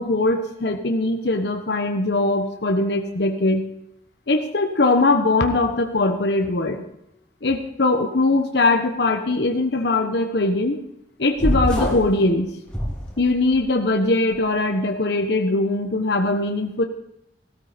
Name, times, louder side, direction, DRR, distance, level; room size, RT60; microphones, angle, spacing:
voice 1, 0.0-3.7 4.3-6.8 7.4-10.8 11.2-12.5 13.2-16.8, left 2 dB, 70° left, 5 dB, 1.2 m, -21 dB
sound 1, 11.4-12.1 12.7-13.6, equal, 5° left, 4.3 m, -24 dB
16.5 x 13.0 x 5.2 m, 0.80 s
head